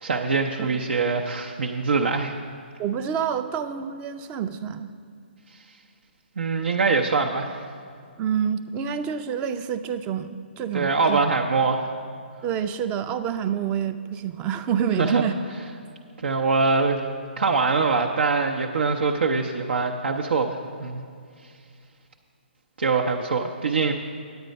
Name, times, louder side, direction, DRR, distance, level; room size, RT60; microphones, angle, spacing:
voice 1, 0.0-2.3 6.4-7.6 10.7-11.9 15.0-15.2 16.2-17.0 17.4-21.0 22.8-23.9, right 4 dB, 80° right, 2 dB, 0.7 m, -23 dB
voice 2, 2.8-4.9 8.2-11.2 12.4-15.3, right 8 dB, 20° right, 10 dB, 0.4 m, -28 dB
9.2 x 8.8 x 5.3 m, 2.2 s
hypercardioid pair, 150°, 6 cm